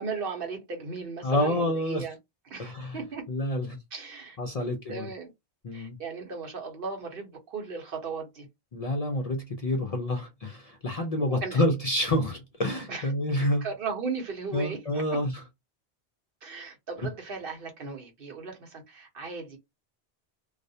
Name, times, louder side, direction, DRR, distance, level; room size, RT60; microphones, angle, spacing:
voice 1, 0.0-2.2 2.5-3.2 3.9-5.3 5.7-8.5 11.4-11.6 12.9-13.1 13.6-15.2 16.4-19.6, right 4 dB, 60° right, 1.0 m, -37 dB
voice 2, 1.2-2.1 2.6-3.0 3.3-3.8 4.4-5.1 5.6-6.0 8.7-13.7 14.5-15.3, left 1 dB, 55° left, 0.4 m, -28 dB
2.4 x 2.0 x 2.6 m
omnidirectional pair, 1.1 m